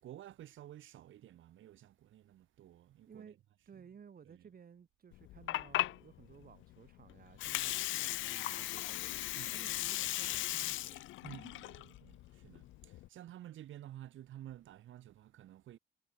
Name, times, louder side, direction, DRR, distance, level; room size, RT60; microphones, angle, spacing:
voice 1, 0.0-3.3 3.8-3.9 4.2-4.5 9.3-9.6 11.2-15.8, right 12 dB, 75° right, 5.4 m, -52 dB
voice 2, 3.1-3.4 3.7-9.0 9.5-11.1, right 7 dB, 45° right, 4.4 m, -57 dB
Water, 5.1-13.1, left 17 dB, 80° left, 0.4 m, -38 dB
cardioid pair, 90°, 20 cm